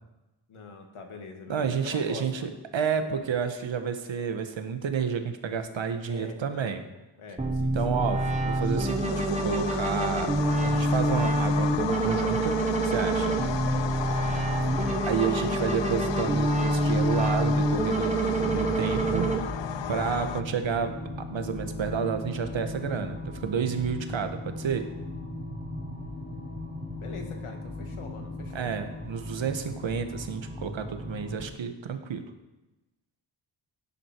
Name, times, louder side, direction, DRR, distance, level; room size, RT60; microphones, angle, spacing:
voice 1, 0.5-2.5 6.1-6.8 7.2-8.4 13.6-15.1 27.0-28.7, left 4 dB, 80° left, 3 dB, 2.4 m, -44 dB
voice 2, 1.5-6.8 7.7-10.4 10.6-12.6 12.8-13.4 15.1-19.3 19.9-20.9 21.2-24.9 28.5-32.3, right 6 dB, 65° right, 7 dB, 1.5 m, -30 dB
sound 1, 7.4-19.4, right 2 dB, 15° right, 1.4 m, -26 dB
sound 2, 8.5-20.4, left 9 dB, 60° left, 0.7 m, -34 dB
sound 3, 18.3-31.5, left 2 dB, 20° left, 3.1 m, -37 dB
16.0 x 10.0 x 4.6 m, 1.0 s
wide cardioid pair, 135°, 49 cm